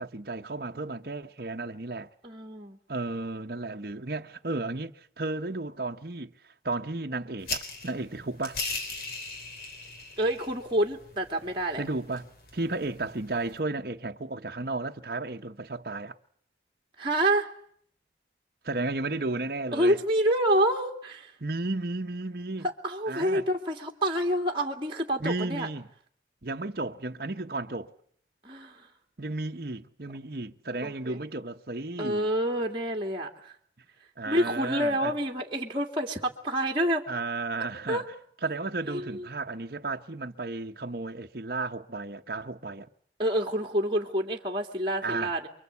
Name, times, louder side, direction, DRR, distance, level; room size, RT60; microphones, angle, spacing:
voice 1, 0.0-2.1 2.9-6.3 6.6-8.6 11.8-16.2 18.6-20.0 21.4-22.7 23.1-23.5 25.2-25.9 26.4-27.9 29.2-32.3 34.2-35.1 37.1-38.0 38.4-42.9 45.0-45.3, right 2 dB, 55° right, 1.1 m, -33 dB
voice 2, 2.2-2.8 10.2-11.8 17.0-17.5 19.7-21.3 22.6-25.7 28.4-28.9 30.8-31.2 32.0-33.5 34.3-37.0 37.9-38.0 38.9-39.3 43.2-45.5, right 1 dB, 30° right, 2.7 m, -28 dB
sound 1, 7.4-13.6, left 3 dB, 55° left, 3.7 m, -39 dB
28.5 x 23.5 x 8.4 m
head